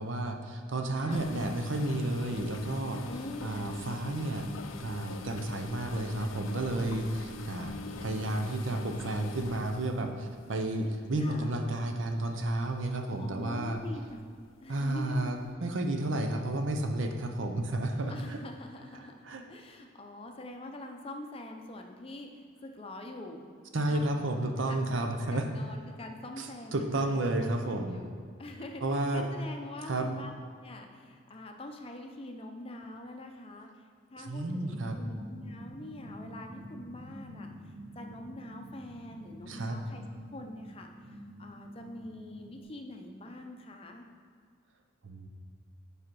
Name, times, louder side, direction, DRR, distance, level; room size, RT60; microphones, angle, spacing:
voice 1, 0.0-3.0 3.4-4.5 4.8-13.8 14.7-18.4 19.2-19.4 23.7-25.5 26.4-28.0 28.8-29.2 29.9-30.1 34.3-35.0 39.5-39.8 45.0-45.3, right 1 dB, 75° right, 5 dB, 0.7 m, -32 dB
voice 2, 0.8-1.5 3.0-3.7 11.2-11.6 13.1-15.3 17.9-23.4 23.7-24.1 24.6-28.1 28.4-30.3 30.6-44.0, left 1 dB, 30° left, 3 dB, 0.6 m, -45 dB
sound 1, 1.1-11.3 11.9-12.2 12.7-12.9 13.7-14.1 14.4-14.5 15.5-15.6, left 3 dB, 85° left, 0.5 m, -43 dB
sound 2, 34.6-42.6, equal, 45° right, 0.8 m, -47 dB
7.5 x 4.9 x 4.6 m, 2.1 s
head